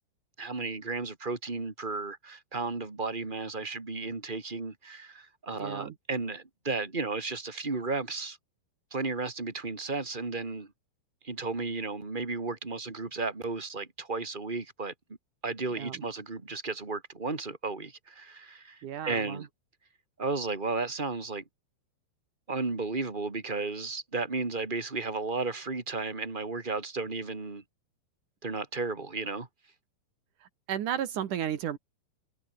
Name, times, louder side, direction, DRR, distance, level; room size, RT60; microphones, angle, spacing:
voice 1, 0.4-8.4 8.9-10.7 11.2-14.9 15.4-19.5 20.2-21.4 22.5-27.6 28.4-29.5, right 3 dB, 20° right, 1.3 m, -34 dB
voice 2, 5.6-6.0 15.7-16.0 18.8-19.5 30.4-31.8, right 10 dB, 60° right, 2.3 m, -34 dB
omnidirectional pair, 5.2 m